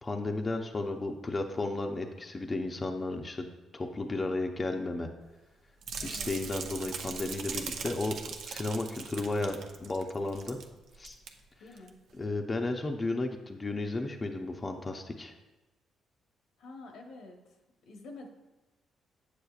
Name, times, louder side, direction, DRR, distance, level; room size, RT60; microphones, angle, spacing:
voice 1, 0.0-3.5 3.7-5.1 6.0-8.2 8.4-10.6 11.0-11.2 12.2-15.3, left 2 dB, 25° left, 3 dB, 0.6 m, -33 dB
sound 1, 5.8-10.7 10.9-11.3 11.8-11.9, right 5 dB, 70° right, 0.5 m, -40 dB
voice 2, 6.0-6.3 11.6-12.0 16.6-17.4 17.9-18.3, left 2 dB, 85° left, 2 dB, 1.0 m, -47 dB
8.3 x 6.6 x 2.4 m, 1.1 s
cardioid pair, 90°, 0 cm